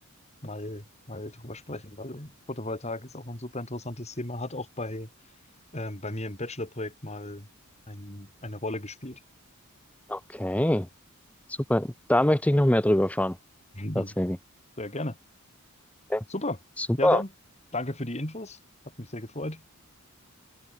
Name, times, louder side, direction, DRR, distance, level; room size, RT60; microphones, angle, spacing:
voice 1, 0.4-5.1 5.7-7.5 7.9-9.2 13.7-14.1 14.8-15.2 16.3-16.6 17.0-17.3 17.7-18.6 19.0-19.6, left 1 dB, 30° left, 3.7 m, -35 dB
voice 2, 10.1-10.9 11.5-13.4 13.9-14.4 16.1-16.2 16.8-17.2, left 1 dB, 5° left, 0.8 m, -24 dB
open air
head